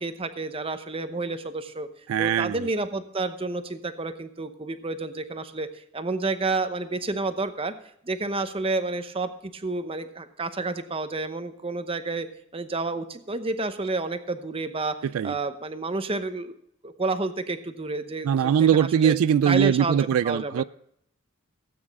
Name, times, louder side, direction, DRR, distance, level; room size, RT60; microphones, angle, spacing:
voice 1, 0.0-1.9 2.2-7.7 8.0-12.3 12.5-15.0 15.2-16.5 16.8-19.2 19.4-20.0 20.2-20.6, right 3 dB, 25° right, 0.8 m, -30 dB
voice 2, 2.1-2.7 15.0-15.3 18.2-20.6, right 8 dB, 80° right, 0.3 m, -21 dB
17.0 x 8.7 x 3.6 m
head